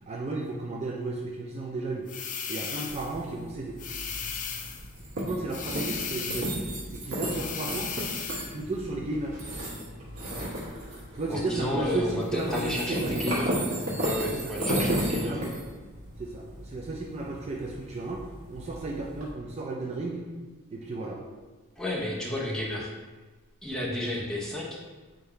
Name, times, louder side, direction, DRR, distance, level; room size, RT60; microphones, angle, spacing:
voice 1, 0.1-2.1 2.5-3.8 5.2-6.7 6.9-8.0 8.5-9.4 11.1-13.3 14.3-15.5 16.2-20.3 20.7-21.2, right 2 dB, 30° right, -1 dB, 0.4 m, -34 dB
sound 1, 2.1-3.2 3.8-4.9 5.5-6.7 7.3-8.5, left 6 dB, 35° left, 0.4 m, -36 dB
sound 2, 2.9-19.3, right 1 dB, 70° right, 1.2 m, -34 dB
voice 2, 11.3-13.5 14.0-15.3 21.8-22.9 23.6-24.8, left 1 dB, 5° left, -4 dB, 0.7 m, -31 dB
3.7 x 2.7 x 4.4 m, 1.3 s
head